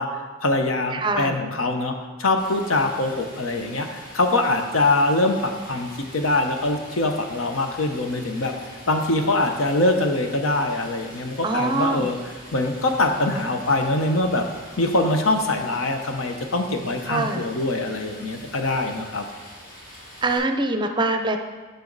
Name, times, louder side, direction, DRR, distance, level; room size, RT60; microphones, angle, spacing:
voice 1, 0.0-8.5 8.9-12.2 12.5-14.5 14.8-19.2, left 2 dB, 80° left, 5 dB, 0.9 m, -23 dB
voice 2, 0.9-1.4 11.4-12.1 17.1-17.4 20.2-21.4, right 2 dB, 25° right, 6 dB, 0.6 m, -23 dB
Stream, 2.4-20.4, equal, 40° left, 2.6 m, -44 dB
10.5 x 5.7 x 4.0 m, 1.3 s
head